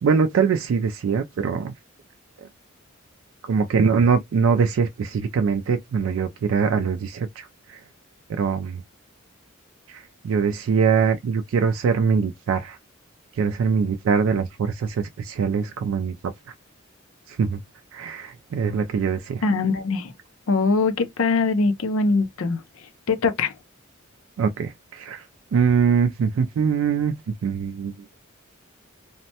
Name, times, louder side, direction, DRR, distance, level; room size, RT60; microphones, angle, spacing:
voice 1, 0.0-1.7 3.5-7.5 8.3-8.8 9.9-12.8 13.4-16.1 17.3-17.6 17.9-19.4 24.4-25.2 25.5-27.9, right 6 dB, 70° right, 0.3 m, -22 dB
voice 2, 19.4-20.1 20.5-22.6 23.1-23.5, left 3 dB, 80° left, 0.5 m, -22 dB
3.1 x 2.1 x 2.7 m
head